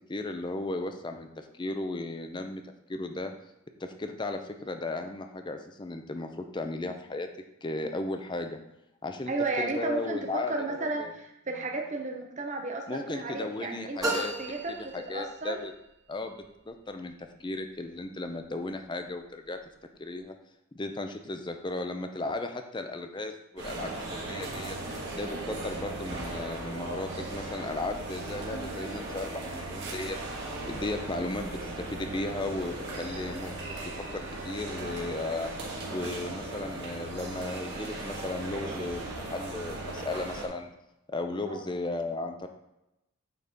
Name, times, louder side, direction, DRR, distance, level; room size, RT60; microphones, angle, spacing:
voice 1, 0.1-2.6 2.9-3.3 3.8-7.3 7.6-8.6 9.0-9.3 9.6-11.1 12.9-14.3 14.7-15.7 16.1-19.6 20.0-20.3 20.7-24.8 25.1-30.2 30.6-33.6 34.0-35.5 35.9-39.0 39.3-40.7 41.1-42.5, left 2 dB, 20° left, 6 dB, 0.5 m, -35 dB
voice 2, 9.3-15.5 41.5-41.6, right 2 dB, 35° right, 2 dB, 0.7 m, -33 dB
sound 1, 14.0-15.7, right 1 dB, 15° right, 1.3 m, -34 dB
sound 2, 23.6-40.5, right 2 dB, 55° right, 1.6 m, -37 dB
8.5 x 4.1 x 3.5 m, 0.89 s
head